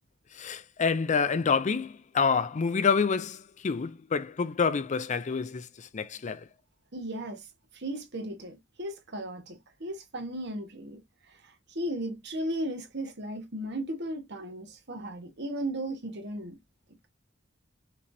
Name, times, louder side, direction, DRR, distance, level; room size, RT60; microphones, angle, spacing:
voice 1, 0.4-3.4 3.6-5.7 5.9-6.4, left 5 dB, 40° left, 0.4 m, -27 dB
voice 2, 6.9-7.5 7.7-11.0 11.4-16.6, right 1 dB, 60° right, 1.4 m, -36 dB
5.9 x 3.2 x 2.7 m
head